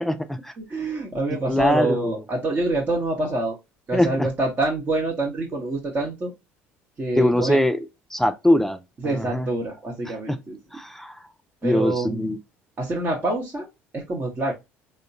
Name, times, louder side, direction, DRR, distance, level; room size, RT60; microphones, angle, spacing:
voice 1, 0.0-0.5 1.5-2.1 3.9-4.3 7.2-7.8 8.1-8.8 9.0-9.5 10.3-10.4 10.7-11.1 11.6-12.4, left 1 dB, 5° left, 0.4 m, -22 dB
voice 2, 0.6-3.6 3.9-6.3 7.0-7.6 9.0-10.6 11.6-12.4 12.8-13.7 13.9-14.5, right 2 dB, 30° right, 0.9 m, -26 dB
3.5 x 2.1 x 2.6 m
hypercardioid pair, 65°, 7 cm